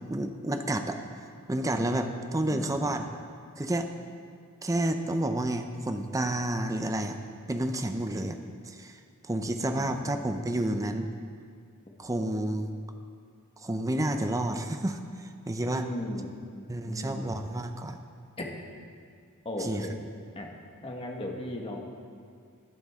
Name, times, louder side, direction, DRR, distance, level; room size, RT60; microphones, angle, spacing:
voice 1, 0.0-3.1 3.6-3.9 4.6-7.2 7.5-8.4 8.6-11.1 12.0-12.7 13.6-15.8 16.7-18.0 19.6-19.9, right 1 dB, 15° right, 7 dB, 0.6 m, -30 dB
voice 2, 2.5-3.0 9.8-10.2 15.6-17.4 18.4-18.5 19.4-19.9 20.3-20.5 20.8-21.8, left 1 dB, 25° left, 0 dB, 1.4 m, -37 dB
21.0 x 7.8 x 3.6 m, 2.2 s
head